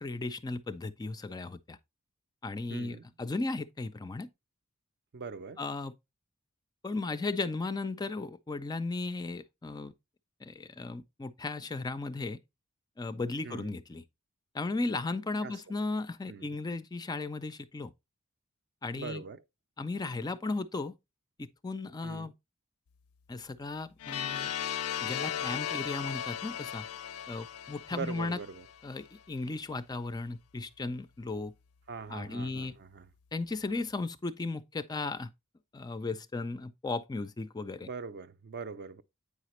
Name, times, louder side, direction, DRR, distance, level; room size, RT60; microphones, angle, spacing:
voice 1, 0.0-1.8 2.4-4.3 5.6-5.9 6.8-9.9 10.4-12.4 13.0-14.0 14.5-17.9 18.8-19.2 19.8-21.0 21.4-22.3 23.3-24.5 25.0-26.9 27.3-28.4 28.8-31.5 32.1-32.8 33.3-35.3 35.7-37.9, left 3 dB, 20° left, 0.3 m, -36 dB
voice 2, 2.7-3.0 5.1-5.6 13.4-13.8 15.4-15.5 16.3-16.5 19.0-19.4 22.0-22.3 27.9-28.6 31.9-33.1 37.8-39.0, right 5 dB, 50° right, 0.5 m, -41 dB
sound 1, 24.0-28.8, left 10 dB, 80° left, 0.4 m, -36 dB
8.5 x 4.9 x 3.0 m
head